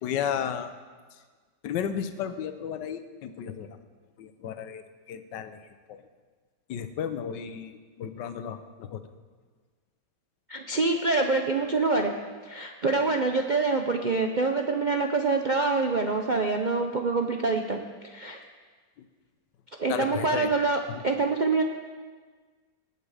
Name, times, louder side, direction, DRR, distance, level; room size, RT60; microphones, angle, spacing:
voice 1, 0.0-0.7 1.6-3.7 4.2-6.0 6.7-9.0 19.9-20.5 20.9-21.0, left 8 dB, 75° left, 10 dB, 1.4 m, -33 dB
voice 2, 10.5-12.1 12.4-17.8 18.1-18.4 19.8-21.6, right 3 dB, 80° right, 3 dB, 0.4 m, -25 dB
19.5 x 8.6 x 4.9 m, 1.5 s
omnidirectional pair, 2.0 m